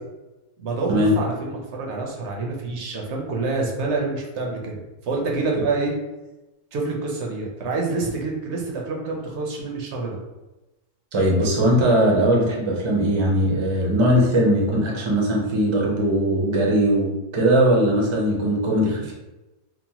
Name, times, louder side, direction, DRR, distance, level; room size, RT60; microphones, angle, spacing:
voice 1, 0.6-5.9 6.7-10.2, right 3 dB, 70° right, -1 dB, 0.8 m, -27 dB
voice 2, 11.1-19.1, equal, 40° right, -3 dB, 0.4 m, -20 dB
2.9 x 2.0 x 2.8 m, 1.0 s
omnidirectional pair, 1.3 m